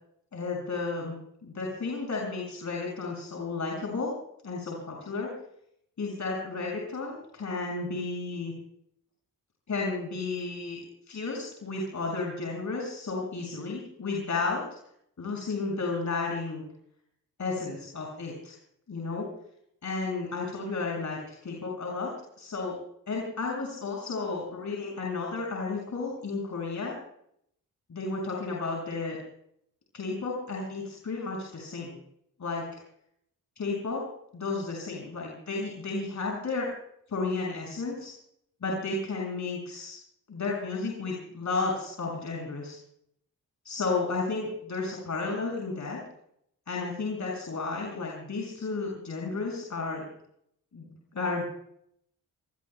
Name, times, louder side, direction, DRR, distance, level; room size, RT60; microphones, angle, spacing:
voice 1, 0.3-1.2 1.4-4.1 4.4-5.3 6.0-8.5 9.7-10.8 11.1-14.6 15.2-16.6 17.4-18.5 18.9-19.3 19.8-22.1 22.4-22.8 23.1-27.0 27.9-29.2 29.9-32.0 32.4-32.6 33.6-34.0 34.3-36.7 37.1-38.1 38.6-40.0 40.3-42.8 43.6-46.0 46.7-50.0 50.7-50.9 51.1-51.5, left 3 dB, 55° left, -2 dB, 6.7 m, -32 dB
27.0 x 20.0 x 2.3 m, 0.70 s
cardioid pair, 55°, 34 cm